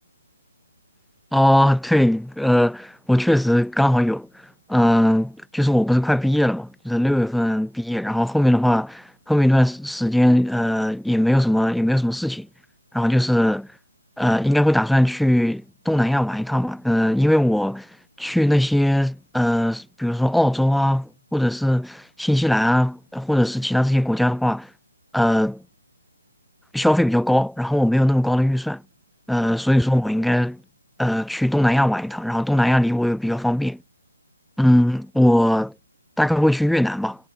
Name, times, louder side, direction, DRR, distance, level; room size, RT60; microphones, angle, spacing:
voice 1, 1.3-4.3 4.7-12.5 12.9-13.6 14.2-17.9 18.2-24.7 25.1-25.6 26.7-28.8 29.3-30.6 31.0-33.8 34.6-35.7 36.2-37.2, left 1 dB, ahead, 4.1 m, -19 dB
figure-of-eight pair, 145°, 0 cm